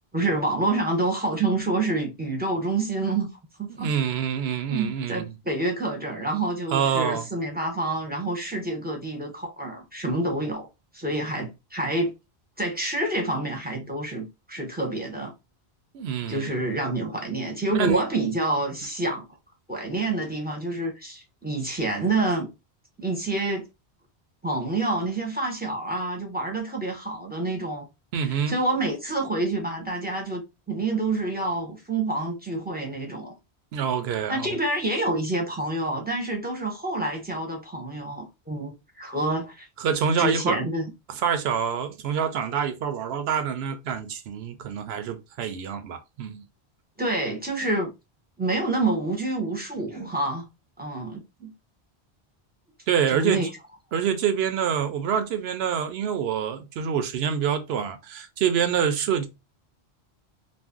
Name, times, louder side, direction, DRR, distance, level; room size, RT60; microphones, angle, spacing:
voice 1, 0.1-3.3 3.6-3.9 4.7-10.7 10.9-12.1 12.6-15.3 16.3-19.3 19.7-22.5 23.0-23.6 24.4-27.9 28.2-33.3 34.3-38.7 39.0-39.7 40.2-40.8 47.0-47.9 48.4-50.5 50.8-51.5 53.1-53.5, right 2 dB, 10° right, 0.6 m, -27 dB
voice 2, 3.8-5.4 6.7-7.3 15.9-16.6 17.7-18.0 28.1-28.6 33.7-34.6 39.8-40.6 41.1-46.4 52.9-53.4 53.9-59.3, right 7 dB, 75° right, 0.8 m, -26 dB
2.5 x 2.0 x 3.5 m
omnidirectional pair, 1.1 m